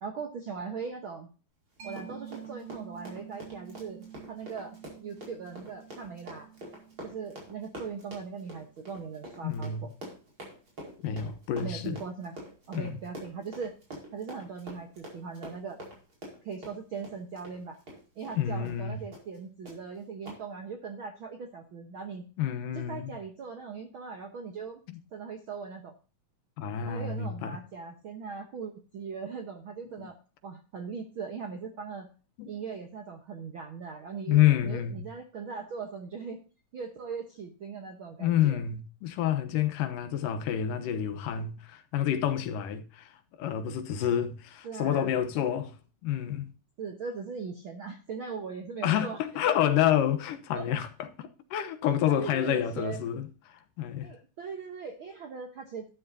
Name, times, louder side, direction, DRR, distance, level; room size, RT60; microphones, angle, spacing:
voice 1, 0.0-1.3 1.8-6.5 7.0-9.9 11.6-12.4 12.7-13.7 14.1-15.8 16.4-17.8 18.2-22.2 22.7-24.8 25.1-25.9 26.8-30.2 30.4-32.1 32.5-36.4 36.7-38.6 44.6-45.1 46.8-49.2 49.4-49.5 50.5-50.7 52.1-53.0 54.0-55.9, right 5 dB, 65° right, 1.2 m, -40 dB
Run, 1.8-18.4 18.7-18.8 19.1-19.4 19.7-19.8 20.3-20.4, right 1 dB, 35° right, 5.5 m, -46 dB
Mallet percussion, 1.8-9.1, right 9 dB, 85° right, 4.1 m, -49 dB
voice 2, 9.4-9.9 11.0-12.0 12.7-12.9 18.4-19.0 22.4-23.1 24.9-25.0 26.6-27.6 29.9-30.1 32.4-32.5 34.3-35.1 38.2-43.1 43.4-45.7 46.0-46.5 48.8-54.1, left 10 dB, 80° left, 2.6 m, -28 dB
12.0 x 10.0 x 2.7 m
omnidirectional pair, 3.9 m